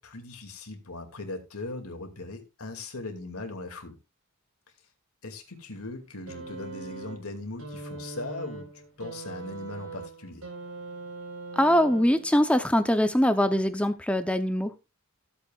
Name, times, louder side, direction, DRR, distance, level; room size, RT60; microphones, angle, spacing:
voice 1, 0.0-4.0 5.2-10.5, left 2 dB, 80° left, 2.5 m, -39 dB
sound 1, 6.3-12.4 13.5-13.6, right 3 dB, 80° right, 4.5 m, -41 dB
voice 2, 11.6-14.7, equal, 5° left, 0.7 m, -23 dB
15.0 x 8.4 x 2.4 m
head